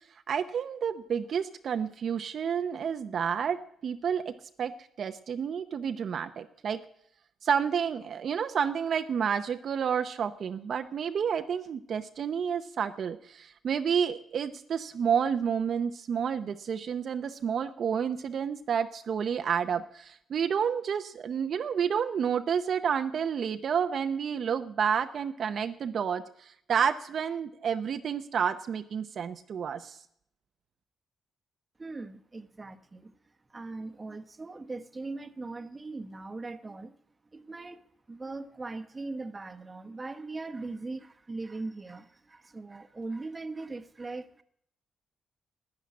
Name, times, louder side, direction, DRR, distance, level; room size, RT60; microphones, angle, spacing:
voice 1, 0.3-4.3 4.6-4.7 5.0-6.8 7.4-30.0, right 7 dB, 60° right, 8 dB, 0.7 m, -30 dB
voice 2, 31.8-33.1 33.5-37.0 37.3-37.8 38.1-44.4, right 3 dB, 25° right, 10 dB, 1.0 m, -40 dB
12.0 x 9.8 x 9.7 m, 0.70 s
cardioid pair, 95°, 0 cm